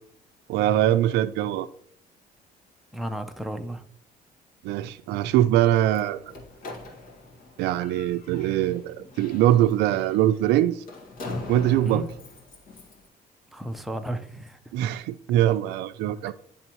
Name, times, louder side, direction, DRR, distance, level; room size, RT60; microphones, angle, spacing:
voice 1, 0.5-1.7 4.6-6.3 7.6-10.8 11.5-12.1 14.7-16.3, right 12 dB, 85° right, 0.4 m, -22 dB
voice 2, 2.9-3.8 11.8-12.1 13.5-14.6, equal, ahead, 0.5 m, -33 dB
Slam, 5.6-13.1, left 2 dB, 55° left, 1.8 m, -41 dB
10.5 x 3.5 x 3.0 m
cardioid pair, 110°, 17 cm